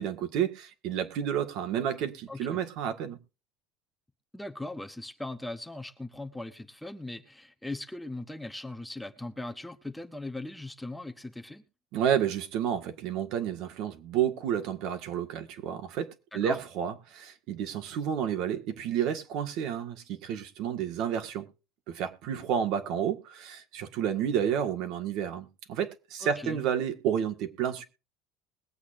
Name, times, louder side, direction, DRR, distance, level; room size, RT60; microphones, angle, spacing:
voice 1, 0.0-3.2 11.9-21.5 21.9-27.8, right 9 dB, 60° right, 1.7 m, -30 dB
voice 2, 2.3-2.6 4.3-11.6 16.3-16.6 26.2-26.6, left 2 dB, 5° left, 0.8 m, -39 dB
21.5 x 8.3 x 2.6 m
cardioid pair, 150°, 0 cm